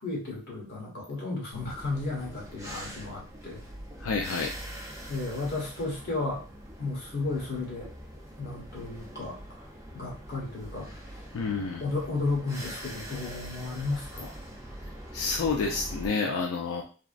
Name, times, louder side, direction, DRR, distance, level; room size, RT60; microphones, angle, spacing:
voice 1, 0.0-3.6 5.1-6.4 6.8-7.9 8.4-9.7 9.9-11.0 11.8-14.3, left 3 dB, 50° left, -4 dB, 1.2 m, -33 dB
sound 1, 1.5-16.1, right 1 dB, 15° right, 0.5 m, -43 dB
voice 2, 4.0-4.5 11.3-11.8 15.1-16.8, left 4 dB, 80° left, 0 dB, 0.4 m, -29 dB
3.4 x 2.0 x 2.4 m, 0.36 s
head